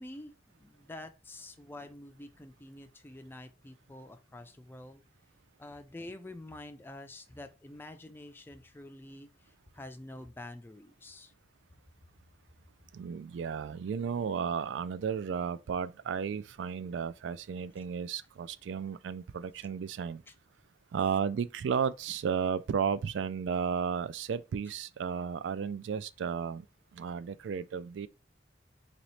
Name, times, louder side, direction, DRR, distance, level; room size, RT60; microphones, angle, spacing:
voice 1, 0.0-5.0 5.6-11.3 20.3-20.4, left 1 dB, 10° left, 0.4 m, -47 dB
voice 2, 12.9-20.2 20.9-26.7 26.9-28.1, right 6 dB, 80° right, 0.3 m, -33 dB
4.1 x 2.9 x 3.1 m
head